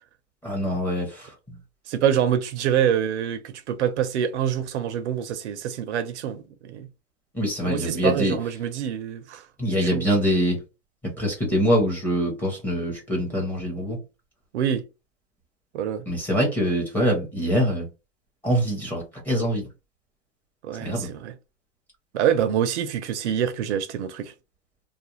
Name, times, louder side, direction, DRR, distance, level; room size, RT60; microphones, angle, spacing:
voice 1, 0.4-1.3 7.3-8.4 9.6-10.6 11.2-14.0 16.1-17.9 18.4-19.7 20.8-21.1, equal, 5° left, 0.7 m, -24 dB
voice 2, 1.9-6.9 7.6-9.4 9.8-10.0 14.5-14.9 15.7-16.1 20.6-21.3 22.1-24.3, right 9 dB, 65° right, 0.6 m, -26 dB
2.4 x 2.1 x 3.0 m
supercardioid pair, 150°, 38 cm